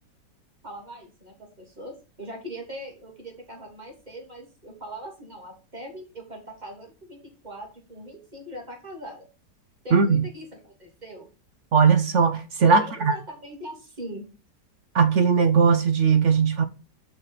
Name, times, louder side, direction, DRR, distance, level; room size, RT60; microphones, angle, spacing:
voice 1, 0.6-7.2 7.4-9.3 9.8-11.3 12.7-14.3, right 1 dB, 25° right, 3.1 m, -41 dB
voice 2, 9.9-10.2 11.7-13.1 14.9-16.6, right 5 dB, 55° right, 0.9 m, -19 dB
6.6 x 5.9 x 5.7 m
omnidirectional pair, 1.9 m